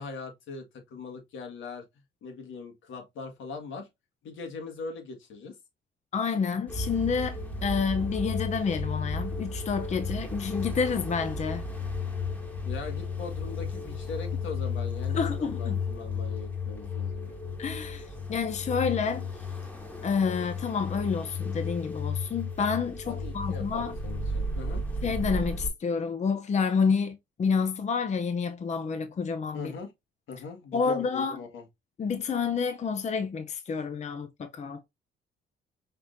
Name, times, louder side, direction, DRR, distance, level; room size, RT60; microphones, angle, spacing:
voice 1, 0.0-1.8 2.2-3.9 4.2-5.5 12.6-17.4 23.0-24.8 29.5-29.9 30.3-31.6, left 4 dB, 75° left, 1.7 m, -40 dB
voice 2, 6.1-11.6 15.1-15.8 17.6-19.3 20.0-23.9 25.0-29.7 30.7-31.4 32.0-34.8, left 5 dB, 35° left, 0.6 m, -29 dB
sound 1, 6.7-25.7, left 3 dB, 10° left, 1.8 m, -33 dB
5.8 x 3.4 x 2.6 m
cardioid pair, 90°, 20 cm